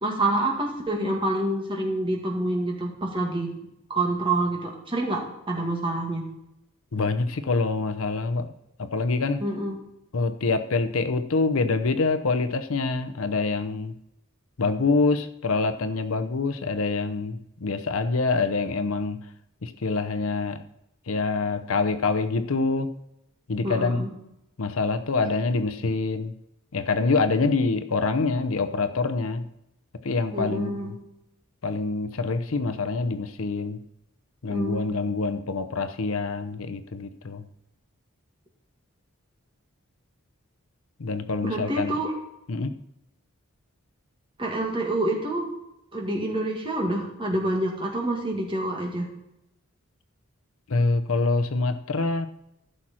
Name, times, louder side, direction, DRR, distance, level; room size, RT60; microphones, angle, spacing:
voice 1, 0.0-3.5 3.9-5.2 5.5-6.2 9.4-9.8 23.6-24.1 30.3-30.9 34.5-35.0 41.4-42.1 44.4-45.5 45.9-49.1, right 2 dB, 25° right, 0 dB, 2.1 m, -27 dB
voice 2, 6.9-8.5 8.8-9.4 10.1-13.9 14.6-19.2 19.6-20.6 21.1-22.9 23.5-24.1 24.6-26.3 26.7-29.5 30.0-31.0 31.6-33.8 34.4-37.4 41.0-41.9 42.5-42.8 50.7-52.3, left 3 dB, 70° left, 10 dB, 0.7 m, -25 dB
14.5 x 6.2 x 4.4 m, 0.83 s
head